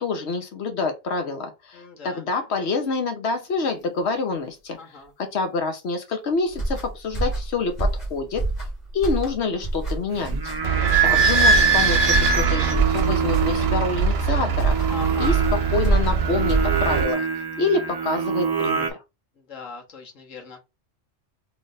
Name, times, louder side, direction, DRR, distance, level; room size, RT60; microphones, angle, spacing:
voice 1, 0.0-4.8 5.2-8.4 8.9-10.3 11.0-14.8 15.2-17.3 17.6-19.0, left 4 dB, 65° left, 1.1 m, -27 dB
voice 2, 1.7-2.2 4.8-5.1 10.7-11.2 14.9-15.3 19.5-20.6, left 4 dB, 80° left, 1.5 m, -40 dB
sound 1, 6.5-17.1, right 2 dB, 35° left, 1.5 m, -27 dB
Singing, 10.1-18.9, right 5 dB, 40° right, 0.3 m, -27 dB
Idling / Squeak, 10.6-17.0, right 5 dB, 60° right, 0.9 m, -21 dB
3.3 x 2.5 x 3.9 m
omnidirectional pair, 1.3 m